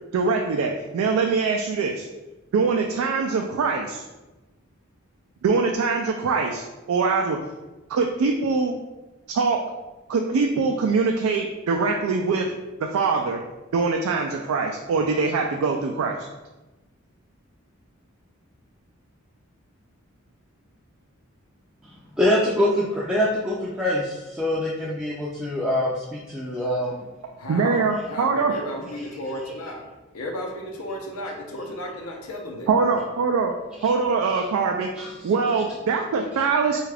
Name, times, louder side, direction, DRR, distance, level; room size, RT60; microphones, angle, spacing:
voice 1, 0.1-2.1 2.5-4.0 5.4-7.4 7.9-8.8 9.3-9.7 10.1-12.5 12.8-13.4 13.7-16.3 27.2-28.5 32.7-34.9 35.2-36.8, right 4 dB, 85° right, 2 dB, 0.3 m, -23 dB
voice 2, 21.8-27.0 33.8-33.9 35.0-35.3, left 1 dB, 5° right, -7 dB, 0.4 m, -25 dB
voice 3, 26.5-26.9 27.4-29.8 30.1-32.7, left 1 dB, 90° left, 0 dB, 0.7 m, -34 dB
3.6 x 2.4 x 3.3 m, 1.1 s
head